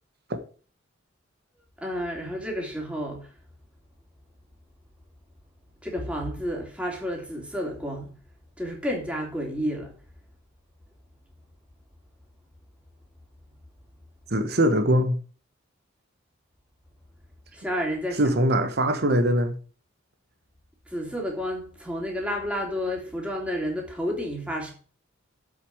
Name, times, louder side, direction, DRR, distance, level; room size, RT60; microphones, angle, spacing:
voice 1, 1.8-3.3 5.8-8.1 8.6-9.9 17.5-18.2 20.9-24.7, equal, 5° right, 3.3 m, -30 dB
voice 2, 14.3-15.2 18.2-19.6, equal, 55° right, 1.4 m, -22 dB
7.9 x 7.2 x 8.1 m
head